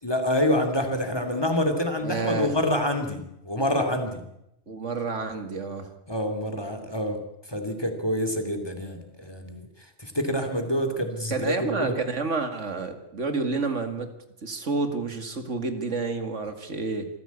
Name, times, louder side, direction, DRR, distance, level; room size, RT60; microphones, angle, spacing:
voice 1, 0.0-4.2 6.1-7.2 7.5-9.7 10.0-11.9, left 1 dB, 20° left, 6 dB, 3.0 m, -27 dB
voice 2, 2.0-2.5 4.7-5.9 11.3-14.1 14.4-17.1, right 4 dB, 85° right, 8 dB, 2.6 m, -29 dB
26.5 x 15.0 x 8.4 m, 0.83 s
omnidirectional pair, 1.2 m